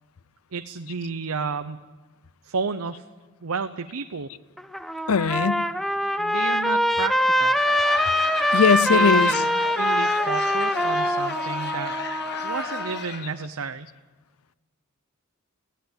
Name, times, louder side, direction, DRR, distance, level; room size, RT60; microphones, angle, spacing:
voice 1, 0.5-1.8 2.4-3.1 3.4-4.3 6.2-7.6 8.8-12.0 12.4-13.9, right 5 dB, 85° right, 9 dB, 0.8 m, -32 dB
Trumpet, 4.6-13.0, equal, ahead, 0.7 m, -23 dB
voice 2, 5.1-5.6 8.5-9.3, left 6 dB, 85° left, 19 dB, 0.5 m, -20 dB
Laughter / Crowd, 7.2-13.5, left 5 dB, 55° left, 1.6 m, -34 dB
17.5 x 16.0 x 9.8 m, 1.3 s
head